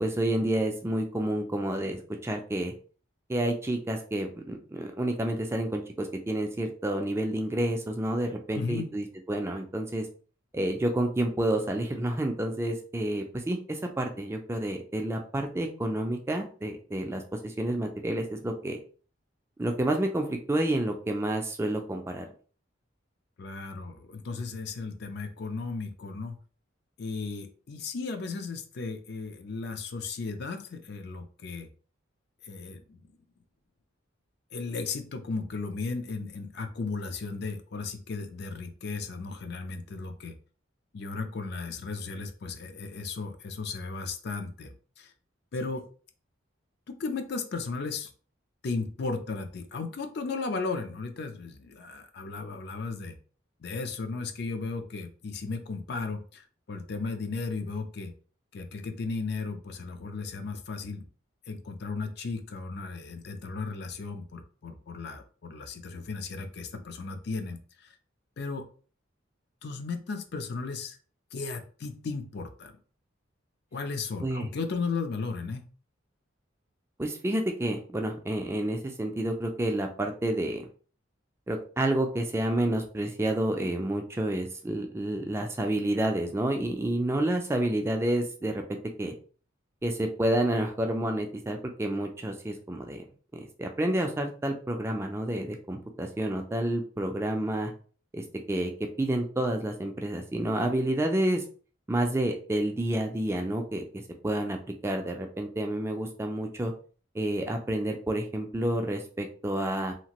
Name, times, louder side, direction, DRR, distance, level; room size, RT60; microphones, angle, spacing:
voice 1, 0.0-2.7 3.3-10.1 10.5-18.8 19.6-22.3 74.2-74.5 77.0-80.7 81.5-89.1 89.8-93.1 93.3-97.7 98.1-101.4 101.9-103.8 104.2-106.7 107.1-109.9, right 1 dB, 15° right, 3 dB, 0.3 m, -29 dB
voice 2, 8.5-8.9 23.4-26.4 27.0-31.7 32.4-33.0 34.5-40.4 40.9-45.1 45.5-45.9 46.9-48.1 48.6-53.2 53.6-58.1 58.5-61.1 61.5-68.0 68.4-68.7 69.6-71.0 71.3-72.8 73.7-75.7, left 4 dB, 55° left, 7 dB, 0.5 m, -35 dB
2.8 x 2.5 x 2.9 m, 0.41 s
head